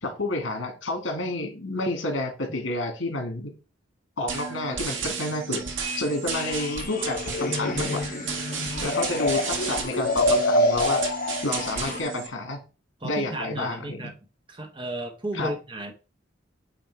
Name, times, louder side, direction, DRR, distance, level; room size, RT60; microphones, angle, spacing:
voice 1, 0.0-3.5 4.2-5.6 6.0-8.0 8.8-11.0 11.4-12.6 13.0-14.1 15.3-15.5, left 2 dB, 85° left, 2.1 m, -30 dB
sound 1, 4.3-12.3, right 5 dB, 80° right, 1.7 m, -33 dB
sound 2, 6.3-12.0, left 2 dB, 45° left, 0.6 m, -26 dB
voice 2, 13.0-14.1 14.5-15.9, right 1 dB, 25° right, 1.2 m, -34 dB
8.6 x 3.1 x 4.6 m
head